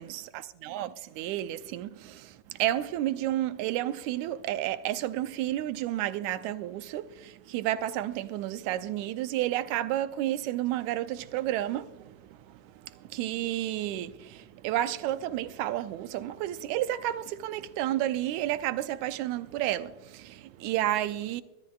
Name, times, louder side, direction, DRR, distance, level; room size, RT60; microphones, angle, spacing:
voice 1, 0.6-21.4, right 13 dB, 80° right, 1.9 m, -31 dB
23.5 x 13.5 x 2.3 m
omnidirectional pair, 3.4 m